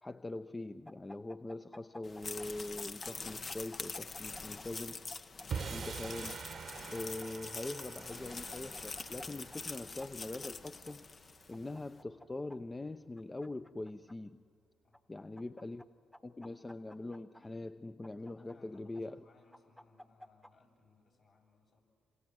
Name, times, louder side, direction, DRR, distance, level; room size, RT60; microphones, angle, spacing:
voice 1, 0.0-5.1 5.7-6.3 6.9-11.1 11.5-14.4 15.1-15.8 16.2-19.2, left 2 dB, 25° left, 9 dB, 0.8 m, -43 dB
sound 1, 0.8-2.5 2.8-4.6 5.1-7.3 8.1-9.2 9.5-9.6 10.0-10.9 11.5-12.6 13.2-14.1 14.9-15.8 16.1-17.4 18.0-19.0 19.5-20.5, equal, 10° left, 1.3 m, -53 dB
sound 2, 2.0-11.6, left 4 dB, 45° left, 1.0 m, -45 dB
sound 3, 5.5-11.9, right 6 dB, 60° right, 1.0 m, -46 dB
voice 2, 18.3-21.8, left 3 dB, 60° left, -1 dB, 7.6 m, -67 dB
27.5 x 26.5 x 7.8 m, 2.2 s
hypercardioid pair, 45°, 0 cm